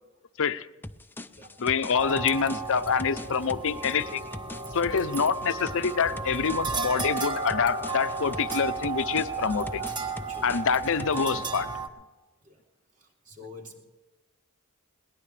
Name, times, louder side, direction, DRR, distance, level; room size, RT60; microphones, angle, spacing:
sound 1, 0.8-11.5, left 1 dB, 10° left, 0.5 m, -42 dB
voice 1, 1.6-4.2 4.7-9.8 10.4-11.7, left 6 dB, 65° left, 12 dB, 0.7 m, -26 dB
sound 2, 1.9-11.9, right 4 dB, 20° right, 1.4 m, -33 dB
voice 2, 9.0-10.6 12.4-12.6 13.0-13.8, left 1 dB, 40° right, -1 dB, 3.4 m, -48 dB
21.5 x 19.0 x 3.3 m, 1.2 s
head